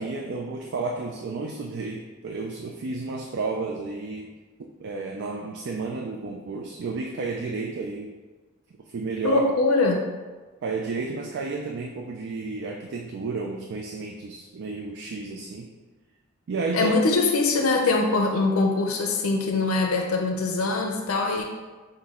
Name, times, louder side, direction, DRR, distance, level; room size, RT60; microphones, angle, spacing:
voice 1, 0.0-4.3 4.6-8.1 8.9-9.4 10.6-15.7 16.5-17.0, right 3 dB, 60° right, 0 dB, 0.4 m, -32 dB
voice 2, 9.2-10.1 16.7-21.4, left 3 dB, 90° left, 2 dB, 0.5 m, -23 dB
5.8 x 2.2 x 3.6 m, 1.3 s
head